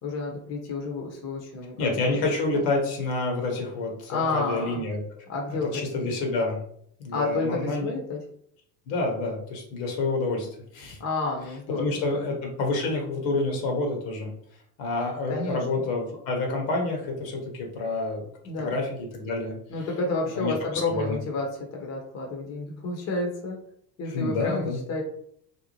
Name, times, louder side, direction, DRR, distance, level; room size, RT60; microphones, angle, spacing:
voice 1, 0.0-2.2 2.5-2.7 4.1-4.8 5.3-6.1 7.1-8.2 11.0-12.4 15.3-15.6 18.4-18.8 19.7-23.6 24.0-25.0, left 3 dB, 30° left, 0 dB, 0.8 m, -30 dB
voice 2, 1.8-5.0 5.7-6.6 7.0-7.9 8.9-11.0 11.8-14.3 14.8-18.3 18.6-18.9 19.1-19.6 20.3-20.5 20.9-21.2 24.1-24.8, left 2 dB, 65° left, 1 dB, 1.1 m, -28 dB
2.7 x 2.0 x 3.0 m, 0.65 s
hypercardioid pair, 85°, 49 cm